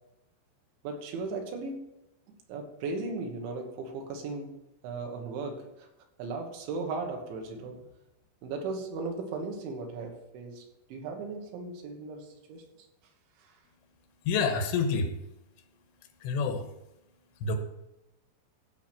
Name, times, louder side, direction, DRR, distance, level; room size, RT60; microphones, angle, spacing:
voice 1, 0.8-1.9 2.5-5.9 6.2-7.8 8.4-12.7 13.4-13.6, right 3 dB, 75° right, 3 dB, 3.6 m, -37 dB
voice 2, 14.3-15.1 16.2-16.7 17.4-17.6, left 4 dB, 80° left, 6 dB, 3.4 m, -27 dB
15.0 x 5.1 x 6.0 m, 0.91 s
omnidirectional pair, 5.6 m